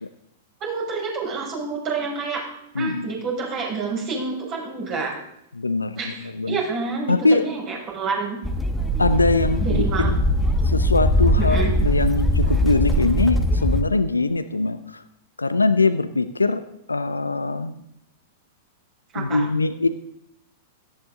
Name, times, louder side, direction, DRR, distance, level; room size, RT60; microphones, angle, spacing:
voice 1, 0.6-2.4 2.7-5.1 6.0-6.2 6.4-8.4 9.6-10.2 11.4-11.7 19.1-19.4, right 4 dB, 35° right, -2 dB, 6.2 m, -28 dB
voice 2, 2.7-3.1 5.5-6.6 7.1-7.5 9.0-10.2 10.6-15.0 15.4-16.6 16.9-17.8 19.2-19.9, left 3 dB, 85° left, 12 dB, 0.7 m, -22 dB
sound 1, 8.4-13.8, equal, 5° left, 1.3 m, -21 dB
17.0 x 13.5 x 3.8 m, 0.77 s
figure-of-eight pair, 100°, 0 cm